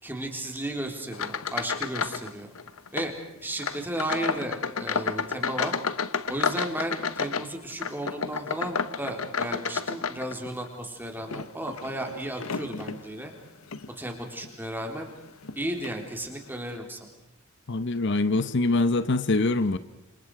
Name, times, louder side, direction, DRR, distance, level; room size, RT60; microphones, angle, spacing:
voice 1, 0.0-2.5 2.9-3.1 3.4-5.8 6.3-13.3 14.0-15.1 15.6-17.1, right 1 dB, 10° right, 3 dB, 3.7 m, -34 dB
sound 1, 1.1-2.3 2.5-3.1 3.6-10.7 11.2-13.0 13.6-13.9 14.4-14.5 15.4-15.5 15.8-16.0, left 5 dB, 85° left, 1.0 m, -31 dB
voice 2, 17.7-19.8, left 2 dB, 55° left, 13 dB, 0.8 m, -24 dB
28.5 x 27.0 x 4.9 m, 0.90 s
head